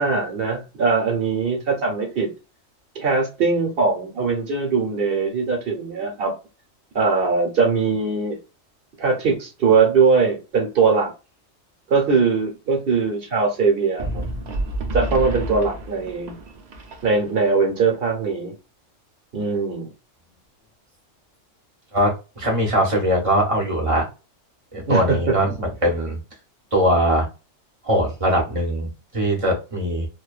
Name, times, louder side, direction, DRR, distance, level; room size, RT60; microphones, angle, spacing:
voice 1, 0.0-2.3 2.9-6.3 6.9-8.4 9.0-11.1 11.9-14.2 14.9-16.3 17.0-18.5 19.3-19.9 24.9-25.4, right 4 dB, 55° right, 0.9 m, -21 dB
sound 1, 14.0-17.5, right 1 dB, 75° right, 0.4 m, -29 dB
voice 2, 21.9-24.1 24.7-26.2 26.7-27.3 27.8-28.9 29.1-30.1, equal, 30° right, 0.8 m, -21 dB
2.6 x 2.2 x 2.3 m
omnidirectional pair, 1.3 m